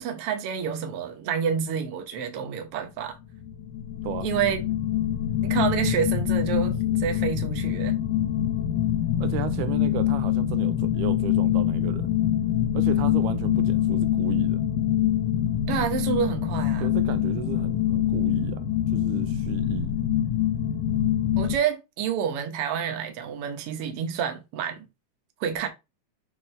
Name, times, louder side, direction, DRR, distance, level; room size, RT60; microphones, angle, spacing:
voice 1, 0.0-3.2 4.2-4.6 5.4-8.0 15.7-16.9 21.4-24.9 25.4-25.7, right 8 dB, 60° right, 1.7 m, -28 dB
sound 1, 3.4-21.6, left 11 dB, 70° left, 2.0 m, -25 dB
voice 2, 9.2-12.1 12.7-14.6 16.8-18.7 18.9-19.9, right 11 dB, 85° right, 2.1 m, -34 dB
7.4 x 2.9 x 4.4 m
omnidirectional pair, 3.6 m